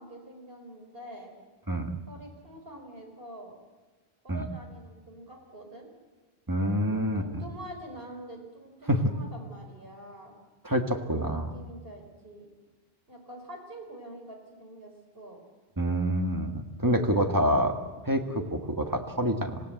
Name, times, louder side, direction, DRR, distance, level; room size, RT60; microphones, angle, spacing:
voice 1, 0.0-1.3 2.1-3.6 4.2-5.9 7.2-10.3 11.1-12.5 13.1-15.4, right 1 dB, 60° right, 2 dB, 4.9 m, -45 dB
voice 2, 6.5-7.4 8.9-9.0 10.6-11.5 15.8-17.7 18.0-19.6, equal, 20° right, 4 dB, 1.7 m, -27 dB
26.5 x 17.0 x 7.9 m, 1.3 s
omnidirectional pair, 1.1 m